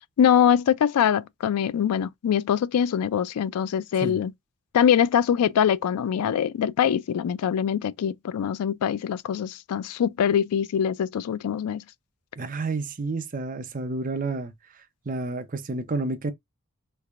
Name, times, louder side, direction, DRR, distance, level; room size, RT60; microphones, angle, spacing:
voice 1, 0.2-4.3 4.7-11.8, left 8 dB, 85° left, 0.3 m, -23 dB
voice 2, 12.4-16.3, right 3 dB, 35° right, 0.6 m, -30 dB
3.3 x 3.2 x 2.4 m
head